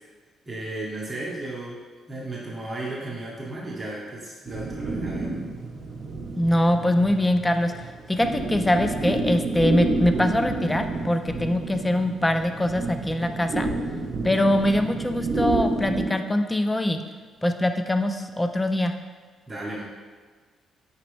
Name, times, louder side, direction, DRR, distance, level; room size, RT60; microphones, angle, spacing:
voice 1, 0.5-1.8 2.1-5.3 19.5-19.8, right 2 dB, 25° right, -5 dB, 0.8 m, -34 dB
sound 1, 4.5-16.1, right 2 dB, 50° right, 0.8 m, -29 dB
voice 2, 6.4-7.7 8.1-13.7 14.2-17.0 17.4-19.0, left 1 dB, 15° left, 7 dB, 0.3 m, -23 dB
5.9 x 2.9 x 3.1 m, 1.5 s
cardioid pair, 90°, 0 cm